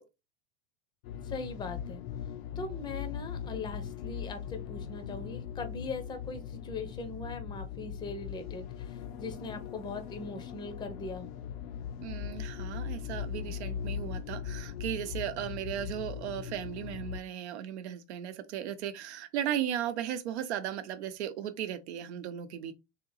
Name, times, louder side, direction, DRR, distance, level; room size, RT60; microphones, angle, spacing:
sound 1, 1.0-17.2, left 8 dB, 60° left, 0.6 m, -40 dB
voice 1, 1.2-2.0 2.6-11.3, left 3 dB, 15° left, 0.6 m, -40 dB
voice 2, 12.0-22.7, right 10 dB, 75° right, 0.8 m, -36 dB
3.6 x 2.8 x 4.0 m
supercardioid pair, 125°, 34 cm